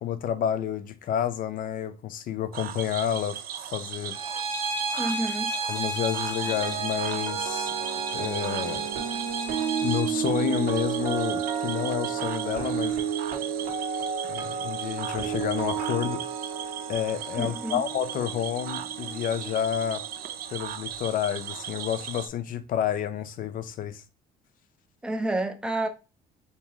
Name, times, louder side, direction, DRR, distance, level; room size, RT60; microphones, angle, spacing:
voice 1, 0.0-3.4 3.7-4.2 5.7-8.9 9.8-13.0 14.3-16.2 16.9-20.0 20.5-24.0, left 9 dB, 55° left, 0.5 m, -30 dB
Cricket / Frog, 2.5-22.3, right 10 dB, 60° right, 0.5 m, -38 dB
Bowed string instrument, 4.1-10.1, right 3 dB, 35° right, 0.8 m, -32 dB
voice 2, 5.0-5.5 17.3-17.8 25.0-25.9, right 1 dB, 5° right, 0.5 m, -29 dB
sound 1, 6.4-20.5 20.7-21.0, right 7 dB, 80° right, 1.5 m, -32 dB
3.6 x 2.9 x 3.0 m
cardioid pair, 110°, 17 cm